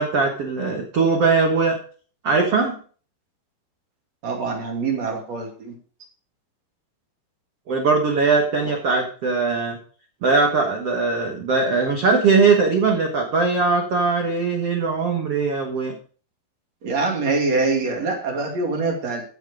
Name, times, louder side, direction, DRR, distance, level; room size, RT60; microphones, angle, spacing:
voice 1, 0.0-1.8 2.2-2.8 7.7-9.8 10.2-15.9, right 4 dB, 90° right, 1 dB, 1.3 m, -20 dB
voice 2, 4.2-5.7 8.6-8.7 16.8-19.2, right 3 dB, 40° right, 1 dB, 3.1 m, -24 dB
14.5 x 6.5 x 4.9 m, 0.42 s
omnidirectional pair, 5.3 m